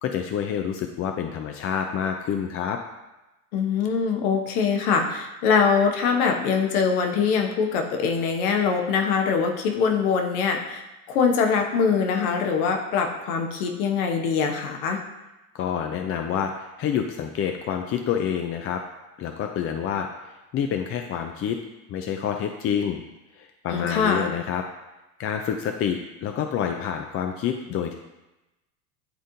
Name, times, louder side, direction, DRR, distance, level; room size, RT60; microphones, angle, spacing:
voice 1, 0.0-2.8 15.5-18.8 19.2-21.6 21.9-23.0 23.4-24.6 25.2-28.0, left 8 dB, 30° left, 4 dB, 0.5 m, -28 dB
voice 2, 3.5-10.8 11.1-15.0 23.7-24.3, left 6 dB, 65° left, 4 dB, 1.1 m, -23 dB
10.5 x 3.7 x 2.7 m, 1.0 s
hypercardioid pair, 85°, 46 cm